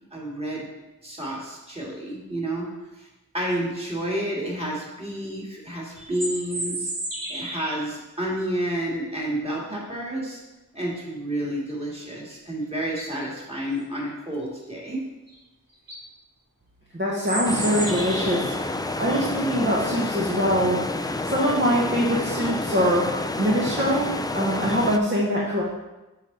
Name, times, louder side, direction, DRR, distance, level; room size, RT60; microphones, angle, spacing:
voice 1, 0.1-0.6 1.0-2.7 3.0-3.1 3.3-6.9 7.3-10.4 10.7-15.0, right 1 dB, 20° right, -5 dB, 2.2 m, -30 dB
sound 1, 6.0-7.8 12.3-12.4 12.8-13.2 15.3-15.4 15.7-16.0 17.2-18.6, right 1 dB, 85° right, 1.7 m, -32 dB
voice 2, 16.9-20.8 21.2-23.1 23.4-25.6, equal, 35° right, -5 dB, 1.2 m, -23 dB
sound 2, 17.4-25.0, left 2 dB, 10° left, 0.4 m, -29 dB
7.1 x 5.1 x 4.0 m, 1.0 s
wide cardioid pair, 50°, 34 cm